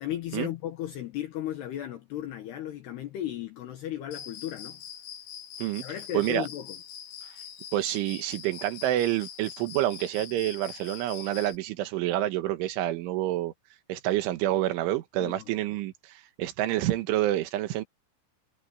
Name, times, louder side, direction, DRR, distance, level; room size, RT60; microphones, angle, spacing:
voice 1, 0.0-4.8 5.8-6.8 15.2-15.5, left 12 dB, 65° left, 3.1 m, -35 dB
Cricket, 4.1-11.6, left 9 dB, 90° left, 5.7 m, -44 dB
voice 2, 6.1-6.5 7.7-13.5 13.9-17.8, right 14 dB, 80° right, 3.8 m, -28 dB
omnidirectional pair, 5.6 m